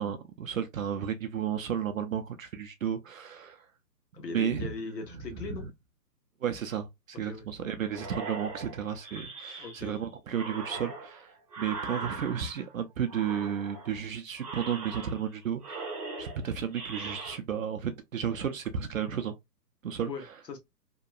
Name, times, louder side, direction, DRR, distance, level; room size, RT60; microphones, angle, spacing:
voice 1, 0.0-3.7 4.3-4.7 6.4-11.3 11.6-15.8 16.2-19.4 19.8-20.1, right 8 dB, 55° right, 0.5 m, -33 dB
voice 2, 4.1-5.7 7.2-7.4 9.6-10.0 20.1-20.6, left 4 dB, 80° left, 1.2 m, -39 dB
sound 1, 7.9-10.0 10.3-12.7 13.1-14.0 14.4-15.3 15.6-17.4, right 4 dB, 25° right, 0.7 m, -40 dB
2.8 x 2.2 x 2.3 m
hypercardioid pair, 160°, 49 cm